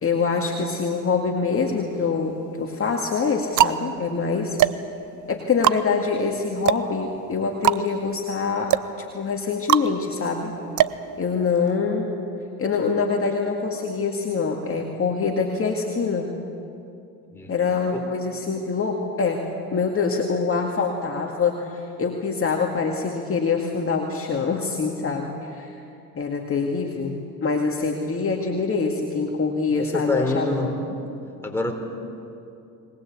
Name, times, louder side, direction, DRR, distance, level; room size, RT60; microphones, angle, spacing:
voice 1, 0.0-4.6 5.3-8.8 9.1-10.6 11.2-12.2 12.6-16.3 17.5-19.4 19.7-25.8 26.2-30.5, left 5 dB, 30° left, 1 dB, 2.2 m, -25 dB
sound 1, 1.6-2.3 3.0-11.8, right 12 dB, 45° right, 0.8 m, -25 dB
voice 2, 29.8-30.7 31.4-31.7, left 2 dB, 5° left, 1 dB, 4.3 m, -25 dB
21.5 x 20.0 x 8.5 m, 2.7 s
hypercardioid pair, 75°, 41 cm